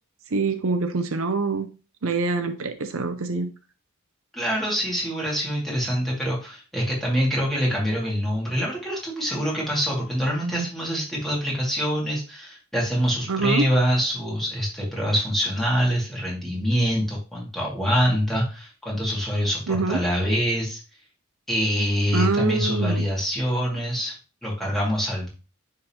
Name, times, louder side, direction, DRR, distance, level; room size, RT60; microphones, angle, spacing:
voice 1, 0.3-1.7 2.0-3.5 10.4-10.7 13.3-13.6 19.7-20.0 22.1-23.0, right 3 dB, 70° right, 7 dB, 0.7 m, -25 dB
voice 2, 4.3-20.8 21.5-24.1 24.4-25.3, equal, ahead, -5 dB, 2.3 m, -25 dB
9.9 x 3.8 x 2.9 m, 0.32 s
head